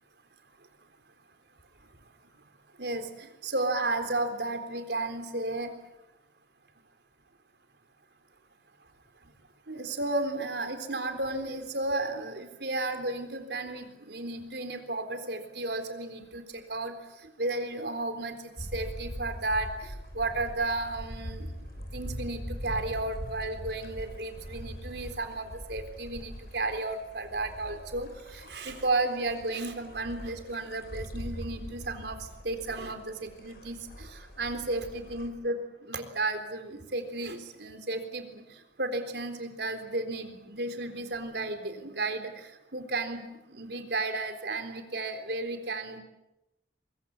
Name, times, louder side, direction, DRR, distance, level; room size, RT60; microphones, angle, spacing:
voice 1, 2.8-5.7 9.7-16.4 16.7-16.9 17.4-18.4 18.7-21.5 21.9-32.2 32.4-38.4 38.8-46.0, right 2 dB, 70° right, 7 dB, 3.8 m, -33 dB
sound 1, 18.6-35.3, equal, 55° left, 5.4 m, -42 dB
23.5 x 23.0 x 8.4 m, 0.93 s
head